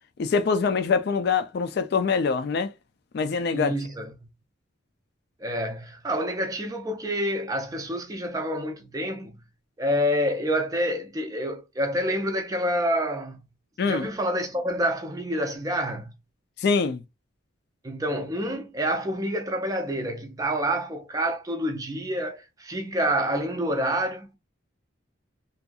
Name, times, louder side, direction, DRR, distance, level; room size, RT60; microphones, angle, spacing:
voice 1, 0.2-2.7 3.1-3.7 13.8-14.1 16.6-17.0, left 5 dB, 50° left, 0.3 m, -24 dB
voice 2, 3.5-4.3 5.4-9.4 9.8-13.4 13.8-16.1 17.8-24.4, equal, 15° right, 0.4 m, -28 dB
2.6 x 2.4 x 2.3 m
head